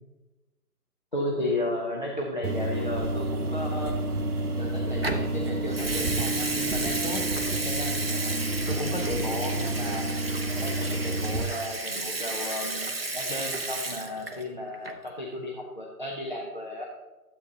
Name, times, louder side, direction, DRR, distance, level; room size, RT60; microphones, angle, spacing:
voice 1, 1.1-3.9 4.6-7.3 7.6-8.0 8.7-10.1 10.6-16.8, left 1 dB, 30° left, -2 dB, 0.8 m, -34 dB
sound 1, 2.4-11.4, right 2 dB, 75° right, 1.1 m, -30 dB
Water tap faucet / Sink (filling or washing) / Liquid, 5.0-5.3 5.7-14.5 14.7-15.1, right 2 dB, 40° right, 0.7 m, -33 dB
12.5 x 8.1 x 2.9 m, 1.2 s
figure-of-eight pair, 160°, 47 cm